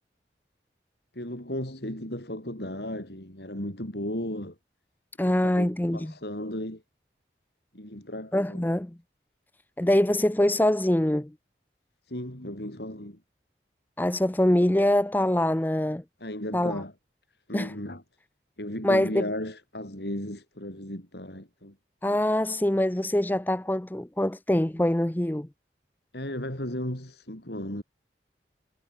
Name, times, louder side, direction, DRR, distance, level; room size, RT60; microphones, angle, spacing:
voice 1, 1.1-4.6 5.2-6.8 7.7-8.6 12.1-13.2 16.2-16.9 17.5-18.0 18.6-21.7 26.1-27.8, left 1 dB, 70° left, 6.6 m, -35 dB
voice 2, 5.2-6.1 8.3-9.0 9.8-11.3 14.0-16.0 16.5-16.8 17.5-17.7 18.8-19.2 22.0-25.5, left 1 dB, 10° left, 0.5 m, -24 dB
head